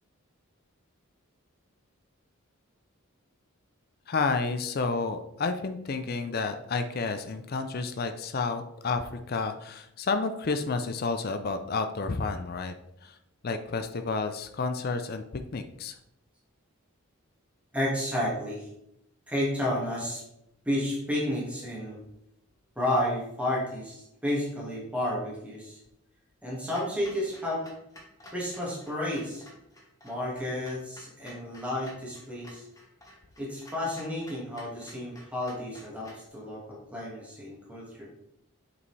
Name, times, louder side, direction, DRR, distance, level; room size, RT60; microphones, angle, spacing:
voice 1, 4.1-12.7 13.0-13.2 13.4-15.2 15.5-16.0, left 4 dB, 45° left, 8 dB, 0.5 m, -30 dB
voice 2, 17.7-18.7 19.3-20.2 20.7-22.0 22.8-25.8 26.4-27.6 28.3-29.4 30.0-32.6 33.4-38.1, left 1 dB, 5° right, -5 dB, 1.8 m, -31 dB
Clock, 26.7-36.3, equal, 15° left, 1.2 m, -52 dB
7.9 x 5.3 x 3.2 m, 0.81 s
head